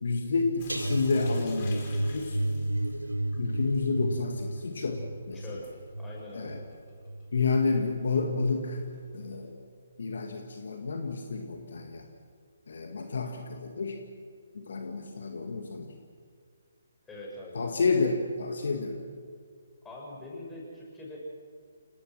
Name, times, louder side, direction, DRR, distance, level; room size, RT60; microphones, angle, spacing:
voice 1, 0.0-1.9 2.1-2.4 3.4-5.6 6.3-6.6 7.3-8.8 9.1-9.5 10.0-12.0 12.7-14.0 14.5-15.9 17.5-19.0, left 4 dB, 60° left, 4 dB, 2.1 m, -30 dB
Sink (filling or washing) / Drip, 0.6-9.5, left 4 dB, 35° left, 4.9 m, -52 dB
sound 1, 0.7-7.8 8.1-8.4 8.8-8.9, right 1 dB, 85° right, 1.2 m, -33 dB
voice 2, 5.3-6.6 17.1-17.6 19.8-21.2, left 1 dB, 10° left, -4 dB, 6.8 m, -43 dB
28.0 x 18.5 x 6.2 m, 2.1 s
figure-of-eight pair, 140°, 0 cm